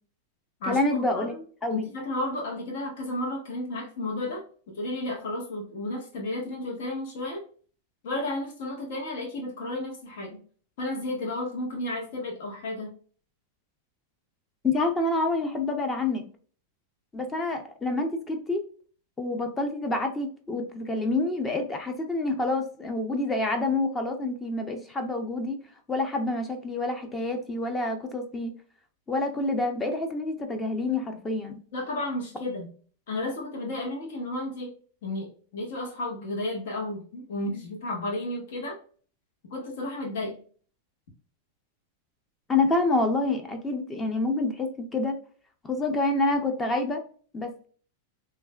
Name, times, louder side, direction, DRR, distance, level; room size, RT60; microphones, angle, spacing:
voice 1, 0.6-1.3 1.6-1.9 14.6-16.2 17.1-18.6 19.2-25.6 25.9-28.5 29.1-31.6 42.5-45.2 45.6-47.0 47.3-47.7, left 2 dB, 15° left, 5 dB, 0.6 m, -27 dB
voice 2, 1.7-4.4 4.8-7.4 8.0-10.4 10.8-12.9 31.7-32.7 33.1-34.7 35.0-38.8 39.5-40.4, left 1 dB, 65° left, 0 dB, 1.1 m, -32 dB
3.3 x 2.4 x 2.2 m, 0.43 s
hypercardioid pair, 120°, 0 cm